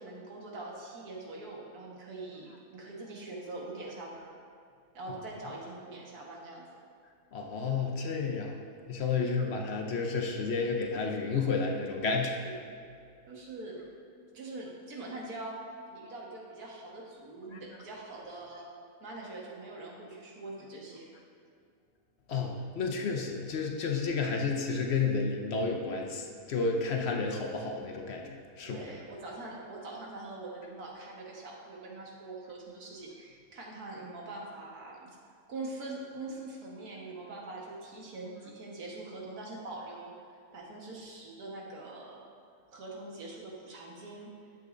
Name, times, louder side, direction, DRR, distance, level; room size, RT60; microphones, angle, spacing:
voice 1, 0.0-4.4 4.9-6.8 9.2-9.3 13.3-13.9 14.3-15.6 15.9-18.7 19.0-21.1 28.6-35.1 35.5-40.1 40.5-42.2 42.7-44.3, right 2 dB, 80° right, -3 dB, 1.9 m, -43 dB
voice 2, 7.3-8.6 8.9-12.3 17.5-17.6 22.3-28.9, left 4 dB, 55° left, 1 dB, 0.9 m, -31 dB
11.5 x 7.5 x 2.6 m, 2.3 s
omnidirectional pair, 1.6 m